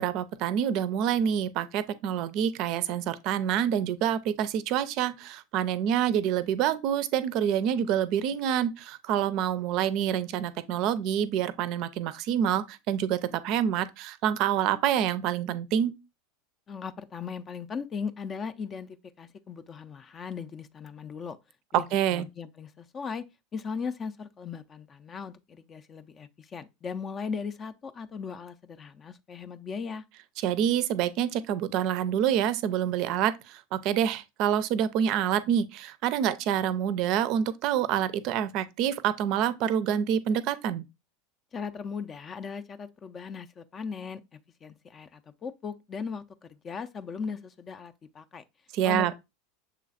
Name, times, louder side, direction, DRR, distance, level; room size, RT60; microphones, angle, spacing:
voice 1, 0.0-15.9 21.9-22.3 30.4-40.8 48.7-49.1, right 9 dB, 55° right, 0.4 m, -27 dB
voice 2, 16.7-21.4 21.7-21.8 22.1-23.2 23.5-30.0 41.5-48.4 48.8-49.1, left 5 dB, 30° left, 0.4 m, -38 dB
6.7 x 3.1 x 2.4 m
hypercardioid pair, 85°, 0 cm